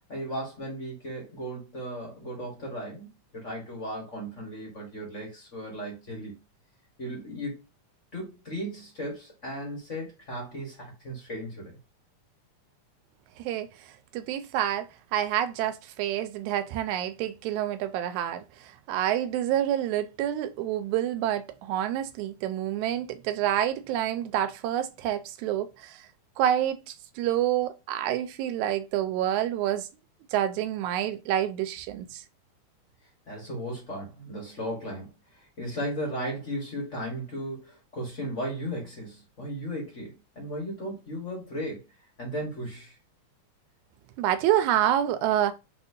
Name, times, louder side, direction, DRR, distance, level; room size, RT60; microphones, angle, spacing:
voice 1, 0.1-6.4 7.0-7.6 8.1-11.8 33.3-41.8 42.2-43.0, equal, 40° left, 1.1 m, -36 dB
voice 2, 13.4-13.7 14.1-18.4 18.9-26.0 26.4-29.9 30.3-32.2 44.2-45.5, right 11 dB, 85° right, 1.9 m, -28 dB
4.2 x 4.2 x 2.7 m
omnidirectional pair, 3.4 m